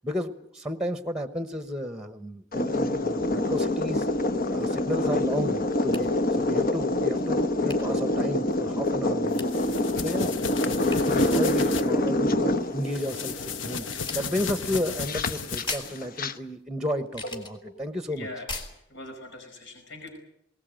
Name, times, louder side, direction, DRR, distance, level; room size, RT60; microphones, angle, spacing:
voice 1, 0.0-4.1 4.5-6.1 6.4-9.5 10.0-13.9 14.1-18.3, equal, 5° right, 10 dB, 1.1 m, -32 dB
sound 1, 2.5-16.3, left 1 dB, 50° left, 1.1 m, -26 dB
sound 2, 4.4-5.0 5.9-6.1 7.7-7.9 9.4-9.6 10.9-11.0 12.4-12.9 13.9-14.4 15.7-16.0 17.0-17.5 18.5-18.7, left 2 dB, 25° left, 3.5 m, -39 dB
sound 3, 9.3-11.9 12.8-16.0, left 5 dB, 90° left, 1.0 m, -34 dB
voice 2, 17.2-17.8 18.1-18.5 18.9-20.1, left 1 dB, 70° left, 4 dB, 5.1 m, -41 dB
20.5 x 18.5 x 9.0 m, 0.75 s
head